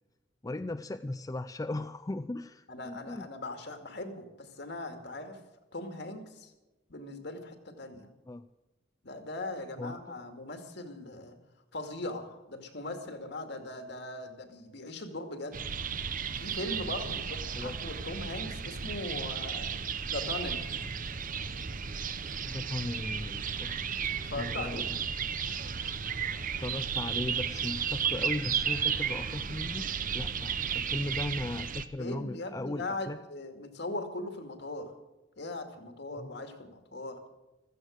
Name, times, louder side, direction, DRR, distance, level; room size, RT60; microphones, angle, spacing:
voice 1, 0.4-3.3 8.3-8.5 9.8-10.2 17.6-17.7 22.4-24.0 24.4-25.0 26.4-29.9 30.1-33.2 36.2-36.4, left 2 dB, 20° left, 9 dB, 0.4 m, -37 dB
voice 2, 2.7-5.4 5.7-6.5 6.9-8.1 9.0-11.4 11.7-15.6 16.4-19.7 20.1-20.7 24.2-24.9 32.0-34.9 35.4-37.2, left 2 dB, 65° left, 6 dB, 2.3 m, -39 dB
sound 1, 15.5-31.9, right 7 dB, 45° right, 0.9 m, -34 dB
16.0 x 14.0 x 6.5 m, 1.0 s
head